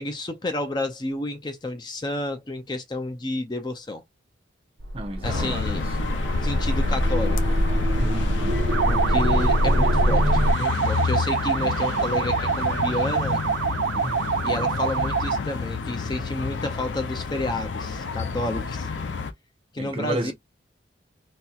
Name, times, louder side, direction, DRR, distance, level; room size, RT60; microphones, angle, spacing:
voice 1, 0.0-4.0 5.2-7.6 8.9-13.4 14.4-18.9 19.7-20.3, left 2 dB, 25° left, 0.4 m, -30 dB
sound 1, 4.8-10.5, equal, 65° right, 0.8 m, -23 dB
voice 2, 4.9-6.1 8.0-8.6 13.9-14.2 19.8-20.3, right 1 dB, 30° right, 0.7 m, -32 dB
sound 2, 5.2-19.3, left 5 dB, 80° left, 0.5 m, -29 dB
sound 3, 8.7-15.5, right 6 dB, 90° right, 0.4 m, -26 dB
4.2 x 2.1 x 2.3 m
head